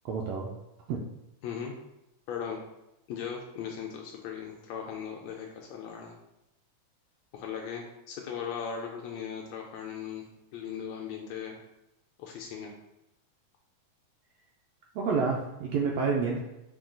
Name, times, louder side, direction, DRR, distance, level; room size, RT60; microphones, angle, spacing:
voice 1, 0.0-0.5 0.9-1.0 14.9-16.4, right 5 dB, 80° right, -2 dB, 1.5 m, -28 dB
voice 2, 1.4-1.8 2.3-2.6 3.1-6.2 7.3-10.2 10.5-11.6 12.2-12.7, left 7 dB, 80° left, 0 dB, 1.6 m, -38 dB
5.8 x 2.3 x 3.7 m, 0.91 s
omnidirectional pair, 3.4 m